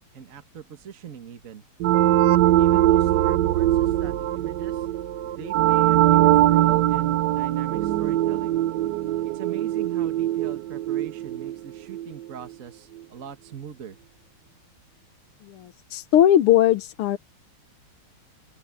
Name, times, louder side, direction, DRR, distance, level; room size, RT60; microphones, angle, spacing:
voice 1, 0.1-1.6 2.6-4.9 5.2-8.6 9.3-14.0, right 8 dB, 45° right, 1.5 m, -41 dB
sound 1, 1.8-12.2, right 14 dB, 70° right, 1.0 m, -21 dB
voice 2, 15.4-17.2, left 11 dB, 85° left, 1.8 m, -19 dB
open air
omnidirectional pair, 2.4 m